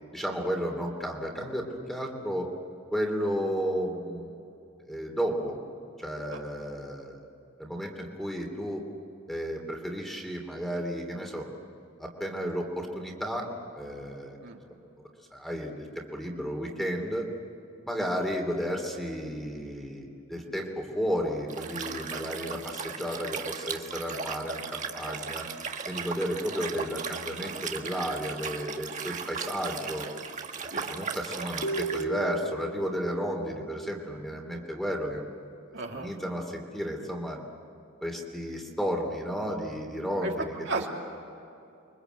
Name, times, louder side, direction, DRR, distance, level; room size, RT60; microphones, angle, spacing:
voice 1, 0.1-2.5 2.9-4.4 4.8-5.6 6.0-7.3 7.6-8.8 9.3-11.5 12.0-13.5 13.7-14.4 15.3-15.9 16.1-17.3 17.8-25.4 25.9-30.1 30.7-35.2 35.9-37.4 38.0-40.8, equal, ahead, 1 dB, 3.1 m, -33 dB
Liquid, 21.5-32.0, right 6 dB, 35° right, 1.6 m, -37 dB
voice 2, 21.8-22.6 30.7-30.9 35.7-36.1 40.2-40.3 40.7-40.9, right 3 dB, 55° right, -1 dB, 3.1 m, -35 dB
sound 1, 31.6-35.4, right 3 dB, 75° left, 3.2 m, -37 dB
30.0 x 24.0 x 8.2 m, 2.7 s
head